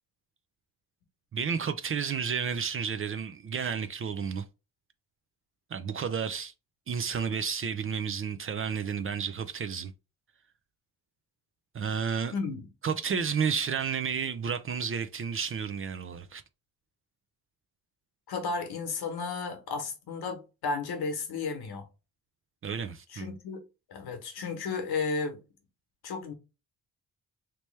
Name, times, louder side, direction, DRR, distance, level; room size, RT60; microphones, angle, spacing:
voice 1, 1.3-4.4 5.7-6.5 6.9-9.9 11.7-12.3 12.8-16.4 22.6-23.4, right 6 dB, 35° right, 0.4 m, -31 dB
voice 2, 12.3-12.7 18.3-21.9 23.1-23.6 23.9-25.4 26.0-26.3, left 4 dB, 75° left, 1.1 m, -33 dB
3.2 x 2.9 x 3.2 m
cardioid pair, 80°, 38 cm